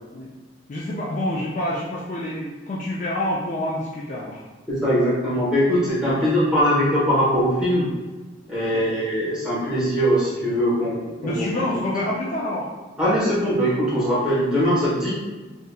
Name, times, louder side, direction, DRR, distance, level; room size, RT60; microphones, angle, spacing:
voice 1, 0.7-4.4 6.0-6.2 11.2-12.7, left 1 dB, 40° left, -4 dB, 0.3 m, -27 dB
voice 2, 4.7-7.9 8.5-11.5 13.0-15.2, equal, 5° right, -9 dB, 1.1 m, -21 dB
3.4 x 2.7 x 2.2 m, 1.2 s
head